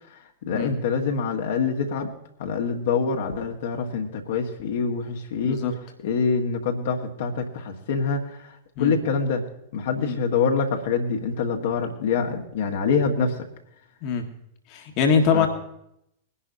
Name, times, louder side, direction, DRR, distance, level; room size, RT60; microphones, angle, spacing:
voice 1, 0.4-2.1 2.4-5.6 6.0-8.5 8.8-9.4 9.7-13.5 15.3-15.5, left 5 dB, 60° left, 1 dB, 1.7 m, -25 dB
voice 2, 14.7-15.5, left 6 dB, 40° left, 4 dB, 1.6 m, -23 dB
21.5 x 11.0 x 2.7 m, 0.75 s
figure-of-eight pair, 95°, 0 cm